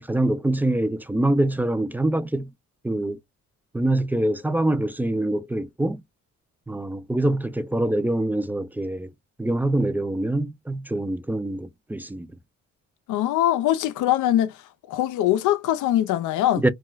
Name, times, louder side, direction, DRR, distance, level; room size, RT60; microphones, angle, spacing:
voice 1, 0.0-2.5 2.8-3.2 3.7-6.0 6.7-9.1 9.4-12.3 16.6-16.7, right 1 dB, 5° right, 0.3 m, -24 dB
voice 2, 13.1-14.6 14.9-16.6, left 13 dB, 80° left, 0.5 m, -22 dB
2.3 x 2.3 x 3.0 m
cardioid pair, 90°, 30 cm